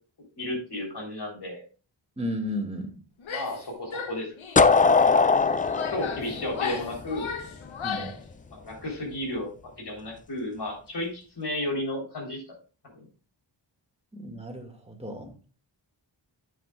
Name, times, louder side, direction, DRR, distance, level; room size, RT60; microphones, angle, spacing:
voice 1, 0.4-1.6 3.3-4.3 4.7-4.9 5.9-7.3 8.5-9.5 9.8-12.6 12.9-13.1, left 1 dB, 60° left, -1 dB, 3.9 m, -33 dB
voice 2, 2.2-3.0 7.8-8.1 14.1-15.3, equal, 15° right, 2 dB, 2.0 m, -34 dB
Female speech woman speaking / Yell, 3.2-3.6 3.9-4.8 5.4-8.2, left 6 dB, 85° left, 1.1 m, -35 dB
sound 1, 4.6-7.4, left 4 dB, 20° left, 0.3 m, -20 dB
10.0 x 7.7 x 2.4 m, 0.36 s
wide cardioid pair, 105°, 46 cm